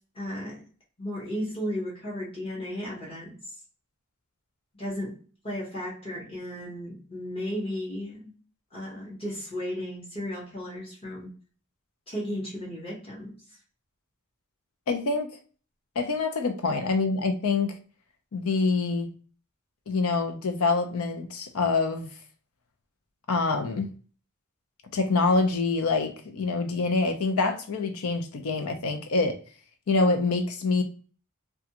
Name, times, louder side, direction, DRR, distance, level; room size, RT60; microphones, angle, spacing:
voice 1, 0.1-0.6 1.0-3.3 4.8-5.2 5.4-8.3 8.7-11.3 12.1-13.3, equal, 25° left, 1.0 m, -34 dB
voice 2, 14.9-15.3 16.0-17.7 18.3-19.1 19.9-22.1 23.3-23.9 24.9-29.4 29.9-30.8, left 3 dB, 85° left, 0.5 m, -25 dB
2.3 x 2.3 x 2.8 m
head